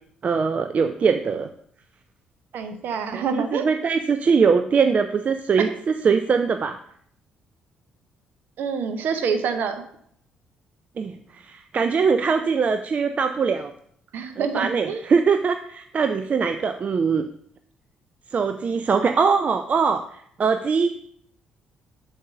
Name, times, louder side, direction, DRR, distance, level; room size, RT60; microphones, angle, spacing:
voice 1, 0.2-1.5 3.1-6.8 11.0-13.7 14.4-17.3 18.3-21.0, right 5 dB, 40° right, 8 dB, 0.4 m, -22 dB
voice 2, 2.5-3.7 5.6-5.7 8.6-9.8 14.1-15.0, right 6 dB, 55° right, 9 dB, 0.7 m, -26 dB
7.2 x 2.7 x 5.8 m, 0.67 s
figure-of-eight pair, 45°, 4 cm